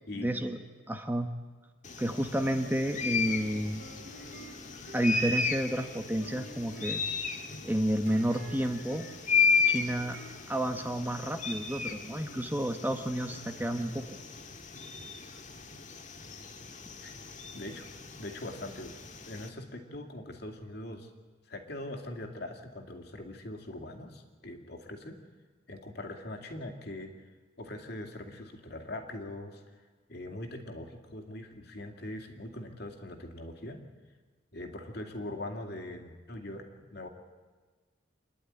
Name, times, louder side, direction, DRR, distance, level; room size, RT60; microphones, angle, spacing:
voice 1, 0.2-0.6 0.9-1.3 2.0-3.8 4.9-7.0 7.6-9.1 9.7-10.2 10.5-14.0, right 1 dB, 10° right, 5 dB, 1.0 m, -30 dB
sound 1, 1.8-19.5, left 5 dB, 40° left, 1.7 m, -34 dB
sound 2, 2.6-10.6, right 2 dB, 60° right, 2.7 m, -51 dB
voice 2, 17.5-17.9 18.2-21.1 21.5-25.2 25.7-27.1 27.6-29.8 30.1-33.8 34.5-37.1, left 1 dB, 55° left, 4 dB, 2.5 m, -42 dB
26.5 x 11.0 x 9.9 m, 1.4 s
head